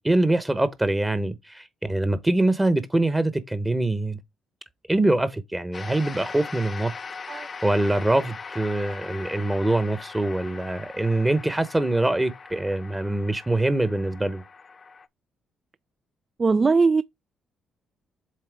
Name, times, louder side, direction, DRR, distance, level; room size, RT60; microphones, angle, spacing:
voice 1, 0.0-4.2 4.9-6.9 7.3-14.4, right 2 dB, 15° right, 0.9 m, -24 dB
sound 1, 5.7-15.1, left 5 dB, 35° left, 0.7 m, -40 dB
voice 2, 16.4-17.0, right 4 dB, 30° right, 0.3 m, -20 dB
7.5 x 4.2 x 3.4 m
cardioid pair, 90°, 0 cm